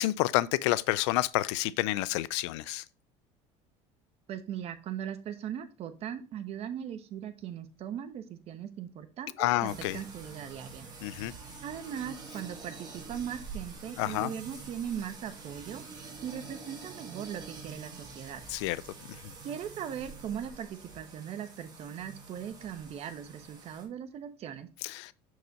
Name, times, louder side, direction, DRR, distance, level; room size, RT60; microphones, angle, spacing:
voice 1, 0.0-2.8 9.4-10.0 11.0-11.3 14.0-14.3 18.5-18.8 24.8-25.1, left 17 dB, 90° left, 0.4 m, -29 dB
voice 2, 4.3-10.9 11.2-11.4 11.6-18.4 19.4-24.7, right 9 dB, 45° right, 1.0 m, -39 dB
sound 1, 9.7-23.8, right 4 dB, 30° right, 2.1 m, -46 dB
6.3 x 4.7 x 4.0 m
cardioid pair, 125°, 14 cm